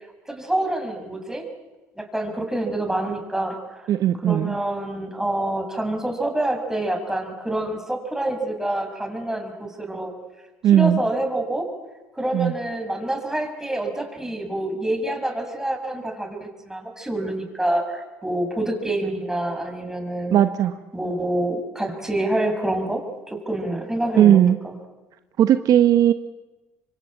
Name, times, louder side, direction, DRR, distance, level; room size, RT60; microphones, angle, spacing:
voice 1, 0.3-1.4 1.9-3.9 4.2-10.1 10.7-11.7 12.1-20.4 20.9-24.7, right 1 dB, 5° right, 4 dB, 6.4 m, -27 dB
voice 2, 3.9-4.5 10.6-11.0 12.3-12.5 20.3-20.7 24.2-24.6 25.4-26.1, right 11 dB, 55° right, 10 dB, 1.1 m, -17 dB
26.0 x 23.5 x 8.8 m, 1.2 s
hypercardioid pair, 65°, 7 cm